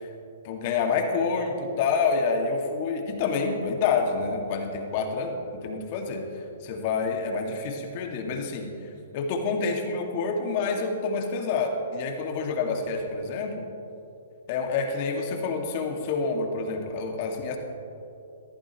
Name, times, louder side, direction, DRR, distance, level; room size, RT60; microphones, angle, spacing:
voice 1, 0.4-6.2 6.6-8.7 9.1-13.7 14.5-17.6, left 4 dB, 45° left, 2 dB, 2.1 m, -28 dB
20.5 x 13.5 x 3.1 m, 2.8 s
hypercardioid pair, 130°, 0 cm